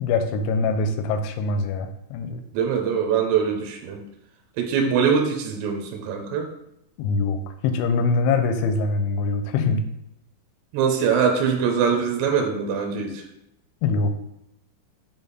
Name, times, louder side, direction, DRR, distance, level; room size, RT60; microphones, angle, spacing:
voice 1, 0.0-2.4 7.0-7.4 7.6-9.8 13.8-14.1, left 4 dB, 85° left, 7 dB, 2.9 m, -23 dB
voice 2, 2.5-4.0 4.6-6.5 10.7-13.2, right 6 dB, 80° right, 3 dB, 2.7 m, -23 dB
8.3 x 3.5 x 4.0 m, 0.81 s
omnidirectional pair, 5.4 m